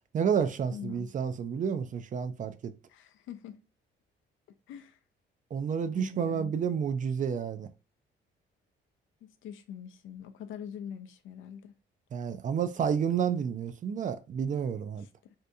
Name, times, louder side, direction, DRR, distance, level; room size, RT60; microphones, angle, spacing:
voice 1, 0.1-2.7 5.5-7.7 12.1-15.1, right 7 dB, 40° right, 0.4 m, -30 dB
voice 2, 0.7-1.1 2.9-3.6 4.7-5.0 5.9-6.5 9.2-11.7 15.0-15.3, left 8 dB, 80° left, 0.5 m, -43 dB
2.7 x 2.6 x 3.3 m
cardioid pair, 90°, 20 cm